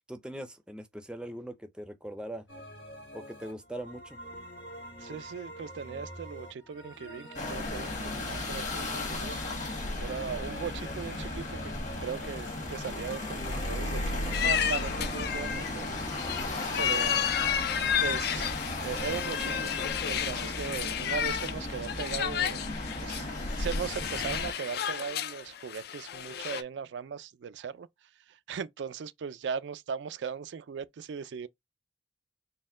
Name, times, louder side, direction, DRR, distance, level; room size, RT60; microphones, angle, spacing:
voice 1, 0.1-2.5 3.1-4.2, right 1 dB, 5° right, 0.5 m, -41 dB
sound 1, 2.5-20.4, equal, 90° left, 1.6 m, -46 dB
voice 2, 5.0-9.4 10.0-11.7 12.0-15.9 16.8-17.3 18.0-18.5 18.8-19.7 20.1-22.6 23.0-23.3 23.6-27.9 28.3-31.5, right 6 dB, 80° right, 0.4 m, -38 dB
sound 2, 7.4-24.5, left 2 dB, 45° left, 1.2 m, -35 dB
sound 3, 14.3-26.6, left 9 dB, 60° left, 0.4 m, -32 dB
4.2 x 2.2 x 3.6 m
head